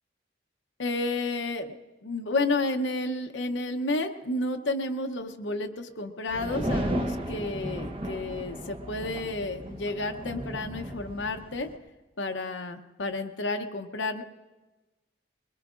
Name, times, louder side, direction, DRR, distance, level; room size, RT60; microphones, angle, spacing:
voice 1, 0.8-1.7 2.0-11.7 12.2-14.2, left 2 dB, 85° left, 5 dB, 0.8 m, -31 dB
sound 1, 6.3-11.8, right 1 dB, 30° right, 0.9 m, -34 dB
21.5 x 21.0 x 2.5 m, 1.1 s
head